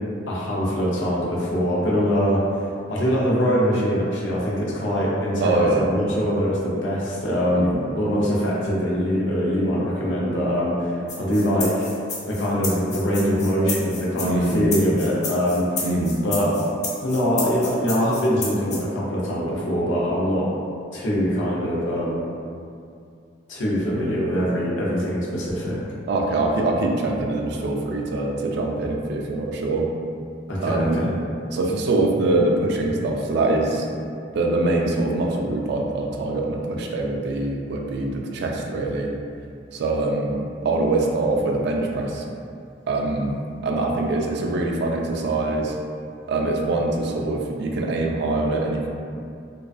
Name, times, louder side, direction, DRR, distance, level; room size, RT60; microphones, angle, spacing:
voice 1, 0.3-2.6 2.9-11.9 12.3-15.9 16.2-16.5 17.0-20.5 20.9-22.3 23.5-25.8 30.5-31.1, equal, 85° left, -5 dB, 0.6 m, -23 dB
voice 2, 5.4-5.9 7.5-7.8 14.2-14.7 15.8-16.2 26.1-29.9 30.6-31.0 31.5-33.9 34.3-39.1 39.7-40.4 40.6-42.2 42.9-43.4 43.6-45.8 46.3-48.9, right 2 dB, 65° right, 0 dB, 0.3 m, -23 dB
sound 1, 11.1-18.8, left 4 dB, 40° left, 0.4 m, -31 dB
2.3 x 2.2 x 2.4 m, 2.4 s
head